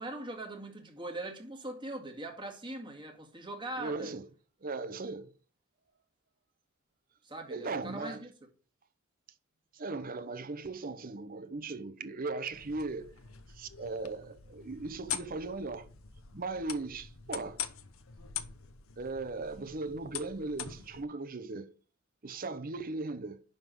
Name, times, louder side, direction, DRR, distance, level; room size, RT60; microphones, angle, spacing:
voice 1, 0.0-4.1 7.2-8.3, right 1 dB, 25° right, 2.1 m, -41 dB
voice 2, 3.8-4.3 4.6-5.3 7.5-8.2 9.7-13.1 13.5-15.9 16.3-17.6 19.0-21.7 22.2-23.4, right 3 dB, 45° right, 0.9 m, -38 dB
sound 1, 12.5-21.0, left 9 dB, 75° left, 0.9 m, -44 dB
11.0 x 3.8 x 6.2 m
head